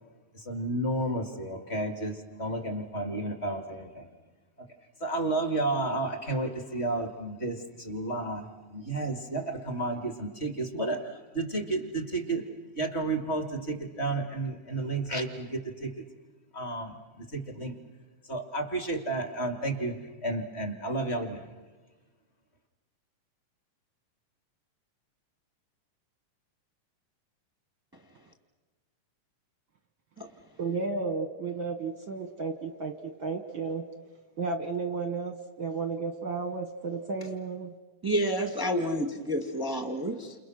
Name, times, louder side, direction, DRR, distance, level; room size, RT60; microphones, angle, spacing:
voice 1, 0.3-4.1 4.6-4.7 5.0-12.4 12.8-16.1 16.5-17.8 18.3-20.0 20.2-21.5, right 2 dB, 25° left, 6 dB, 1.7 m, -32 dB
voice 2, 30.6-33.8 34.4-37.7, right 4 dB, 60° right, 7 dB, 1.3 m, -33 dB
voice 3, 38.0-40.4, equal, 15° right, 3 dB, 0.9 m, -29 dB
29.5 x 28.5 x 6.4 m, 1.2 s
omnidirectional pair, 3.8 m